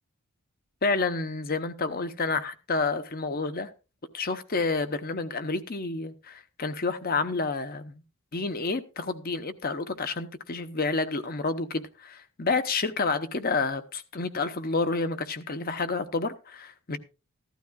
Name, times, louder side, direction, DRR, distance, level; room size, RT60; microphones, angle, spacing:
voice 1, 0.8-3.7 4.1-8.0 8.3-17.0, left 3 dB, 40° left, 0.8 m, -29 dB
15.0 x 12.5 x 2.3 m
head